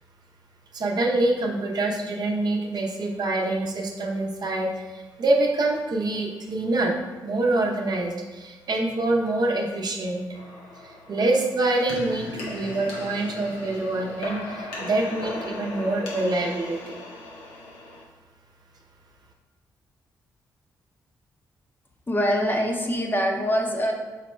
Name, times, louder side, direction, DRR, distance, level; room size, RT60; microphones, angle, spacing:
voice 1, 0.7-7.0 7.2-10.2 10.8-17.0, right 2 dB, 55° right, 0 dB, 0.7 m, -25 dB
sound 1, 10.3-18.0, left 1 dB, 90° left, 0.8 m, -37 dB
voice 2, 22.1-23.9, equal, 25° left, 2 dB, 0.6 m, -24 dB
4.0 x 2.1 x 4.3 m, 1.2 s
supercardioid pair, 55°, 9 cm